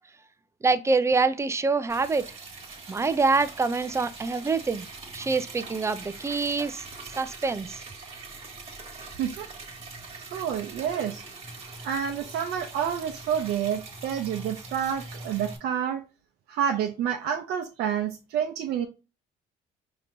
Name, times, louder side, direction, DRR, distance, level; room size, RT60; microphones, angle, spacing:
voice 1, 0.6-2.3 2.9-4.9 5.1-6.8 7.2-7.8, right 4 dB, 15° right, 0.4 m, -25 dB
Liquid, 1.9-15.6, right 3 dB, 40° right, 1.5 m, -42 dB
voice 2, 10.3-11.2 11.8-16.0 16.5-18.9, right 9 dB, 75° right, 0.6 m, -29 dB
5.1 x 2.9 x 2.6 m
cardioid pair, 110°, 17 cm